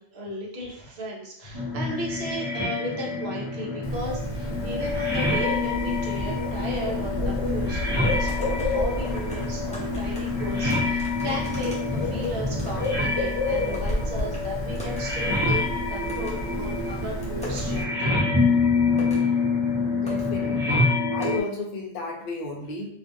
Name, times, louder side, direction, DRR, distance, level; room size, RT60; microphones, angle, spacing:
voice 1, 0.0-18.2 19.1-19.3, equal, 60° right, -2 dB, 0.8 m, -35 dB
sound 1, 1.5-21.4, left 3 dB, 25° right, 0.7 m, -27 dB
voice 2, 1.9-2.4 19.9-20.8 21.1-22.9, left 3 dB, 60° left, -1 dB, 0.7 m, -34 dB
Bird, 3.8-17.8, left 2 dB, 85° left, 0.9 m, -31 dB
sound 2, 8.3-8.8 9.0-10.3 10.7-12.9 13.2-14.0 14.3-14.4 14.8-15.0 15.3-15.4 16.1-16.3 16.8-17.6 18.5-18.6 18.9-19.3 19.7-19.8 20.1-20.3 20.5-20.6 21.2-21.3, right 1 dB, 10° left, 0.4 m, -40 dB
2.4 x 2.4 x 2.6 m, 0.70 s
omnidirectional pair, 1.1 m